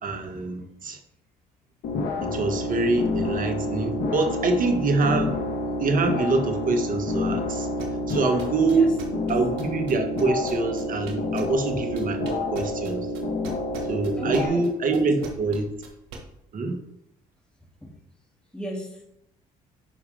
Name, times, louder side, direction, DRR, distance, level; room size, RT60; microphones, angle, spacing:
voice 1, 0.0-1.0 2.2-5.4 5.8-7.7 8.1-8.9 9.3-13.1 13.9-15.7 16.5-16.8, right 3 dB, 50° right, 5 dB, 1.5 m, -25 dB
sound 1, 1.8-14.5, left 2 dB, 65° left, 1.7 m, -29 dB
sound 2, 7.8-11.7 12.0-16.2, right 5 dB, 85° right, 1.4 m, -40 dB
voice 2, 14.1-14.6 15.0-15.3 17.8-17.9 18.5-19.0, equal, 5° left, -5 dB, 2.4 m, -36 dB
10.5 x 4.9 x 3.4 m, 0.79 s
supercardioid pair, 60°, 18 cm